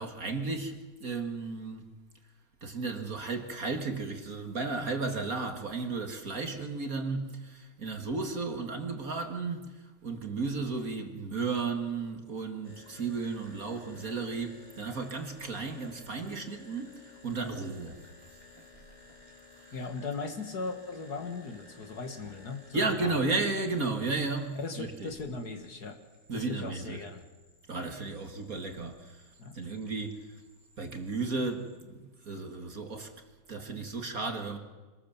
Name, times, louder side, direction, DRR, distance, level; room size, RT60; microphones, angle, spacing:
voice 1, 0.0-1.9 2.6-18.0 19.6-19.7 22.7-25.1 26.3-27.0 27.7-29.2 29.5-30.3 30.8-33.1 33.5-34.6, right 3 dB, 40° right, 2.2 m, -34 dB
sound 1, 12.6-31.8, left 3 dB, 20° left, 4.0 m, -56 dB
voice 2, 19.7-23.1 24.5-26.0 26.3-27.2 29.4-29.7, left 4 dB, 50° left, 2.2 m, -38 dB
26.0 x 20.0 x 7.3 m
omnidirectional pair, 2.4 m